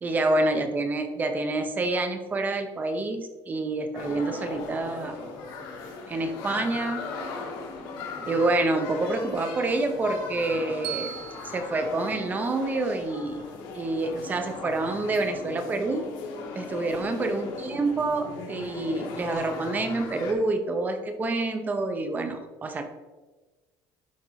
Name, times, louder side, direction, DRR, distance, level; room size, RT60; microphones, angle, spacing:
voice 1, 0.0-5.2 6.1-7.1 8.3-11.1 11.4-13.5 13.7-16.1 16.5-22.8, right 2 dB, 20° right, 7 dB, 0.8 m, -27 dB
sound 1, 3.9-20.3, left 4 dB, 75° left, 1.9 m, -38 dB
Bell, 10.8-13.0, right 11 dB, 90° right, 1.3 m, -40 dB
11.5 x 4.4 x 4.0 m, 1.2 s
cardioid pair, 170°, 8 cm